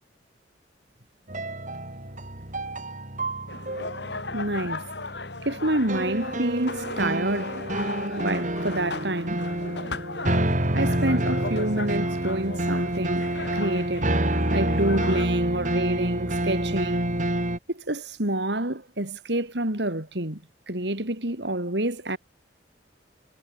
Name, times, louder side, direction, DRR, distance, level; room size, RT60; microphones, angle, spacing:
sound 1, 1.3-17.6, right 1 dB, 45° right, 6.1 m, -28 dB
sound 2, 3.5-15.3, left 3 dB, 70° left, 4.5 m, -37 dB
voice 1, 4.3-4.9 5.4-7.6 8.2-9.5 10.7-17.2 17.7-20.4 20.7-22.2, right 1 dB, 70° right, 3.8 m, -28 dB
head